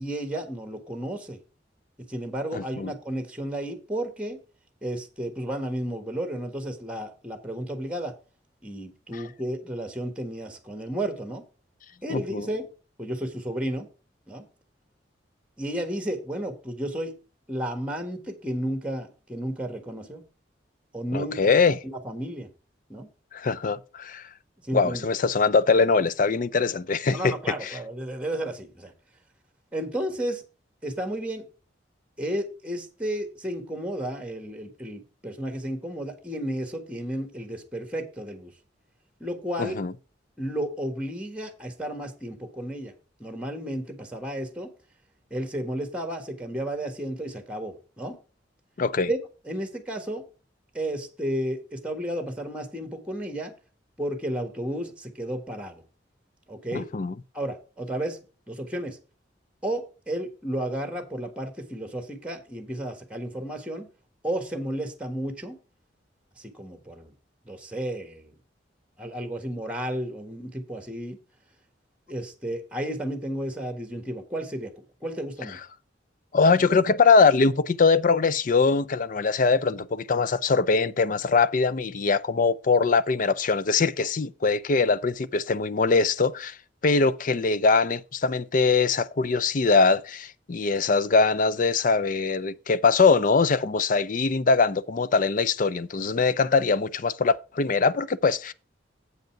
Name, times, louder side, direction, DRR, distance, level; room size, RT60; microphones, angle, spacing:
voice 1, 0.0-1.4 2.0-4.4 4.8-8.1 8.6-11.4 12.0-12.7 13.0-13.9 14.3-14.5 15.6-17.1 17.5-20.3 20.9-21.3 21.8-22.5 22.9-23.1 24.6-25.1 27.1-28.9 29.7-30.4 30.8-31.4 32.2-38.5 39.2-39.8 40.4-42.9 43.2-44.7 45.3-48.2 49.1-49.2 49.4-50.2 50.7-53.5 54.0-55.8 56.5-56.9 57.3-58.2 58.5-59.0 59.6-63.9 64.2-65.6 66.4-67.1 67.4-68.4 69.0-71.2 72.1-74.7 75.0-75.6, right 1 dB, 5° right, 1.4 m, -32 dB
voice 2, 2.5-2.9 12.1-12.5 21.1-21.8 23.3-24.2 24.7-27.3 27.6-27.8 39.6-39.9 48.8-49.1 56.7-57.1 76.3-86.6 86.8-98.5, left 4 dB, 45° left, 0.5 m, -22 dB
8.0 x 5.3 x 5.8 m
head